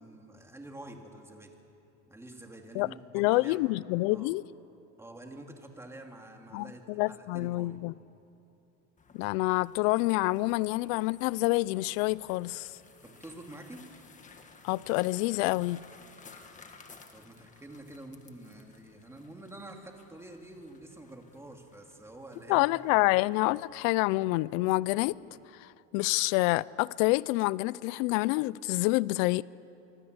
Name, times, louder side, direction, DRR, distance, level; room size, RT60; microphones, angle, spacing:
voice 1, 0.0-1.6 2.1-3.7 4.1-4.4 5.0-7.8 13.0-13.9 17.1-22.9, right 1 dB, 5° right, 2.3 m, -48 dB
voice 2, 3.1-4.4 6.5-7.9 9.1-12.7 14.6-15.8 22.5-25.1 25.6-29.4, left 21 dB, 85° left, 0.5 m, -27 dB
sound 1, 9.0-25.5, left 4 dB, 20° left, 1.6 m, -57 dB
25.5 x 24.5 x 8.0 m
cardioid pair, 150°, 39 cm